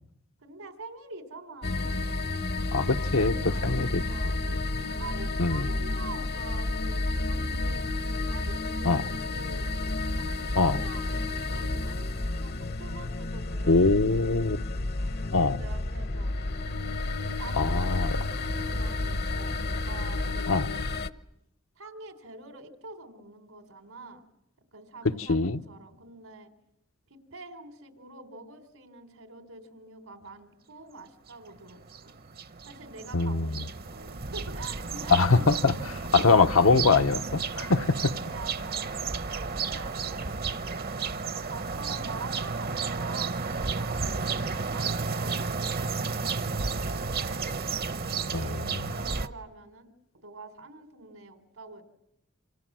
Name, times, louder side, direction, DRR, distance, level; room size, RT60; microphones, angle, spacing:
voice 1, 0.4-2.0 2.8-4.4 4.8-7.8 8.3-8.9 9.3-9.7 10.2-11.1 11.5-12.1 12.4-14.6 14.9-16.3 17.4-20.5 21.8-24.2 24.7-26.5 27.1-32.1 32.6-35.5 38.0-40.8 41.5-47.4 48.2-49.9 50.1-51.8, right 3 dB, 85° right, 4.0 m, -46 dB
sound 1, 1.6-21.1, left 2 dB, 50° left, 1.0 m, -31 dB
voice 2, 2.7-3.3 3.6-4.0 5.4-5.7 8.8-9.0 10.5-10.8 13.7-14.6 15.3-15.6 17.6-18.1 20.5-20.7 25.0-25.6 33.1-33.6 35.1-38.1 48.3-48.8, left 3 dB, 75° left, 1.0 m, -23 dB
sound 2, 31.3-31.4 31.7-49.3, right 4 dB, 45° right, 1.0 m, -32 dB
28.5 x 27.0 x 7.6 m
head